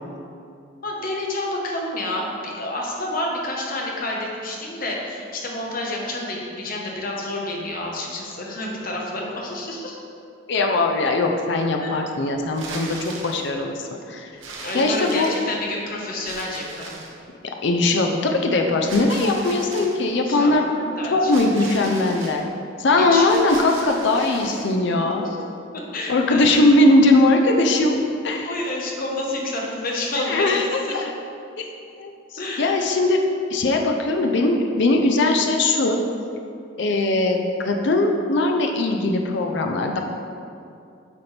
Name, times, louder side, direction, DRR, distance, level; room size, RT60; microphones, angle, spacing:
voice 1, 0.8-10.0 11.8-11.9 14.6-17.2 20.2-21.3 21.6-21.9 23.0-23.3 24.2-24.6 25.2-25.4 25.9-26.6 28.5-30.6 30.8-31.1 32.4-33.0, left 1 dB, 50° left, -2 dB, 1.0 m, -29 dB
voice 2, 10.5-13.0 13.2-14.3 14.7-15.3 17.6-20.6 21.1-22.4 22.8-25.2 26.1-28.0 28.2-28.5 30.3-31.1 31.6-31.7 32.0-33.2 33.5-36.0 36.8-37.4 37.6-40.0, left 2 dB, 65° left, 3 dB, 0.5 m, -20 dB
sound 1, 12.5-13.5 14.4-15.7 16.3-17.2 18.9-20.0 21.3-22.4 23.2-24.7, right 3 dB, 80° right, 0.9 m, -38 dB
8.4 x 4.3 x 3.3 m, 2.5 s
head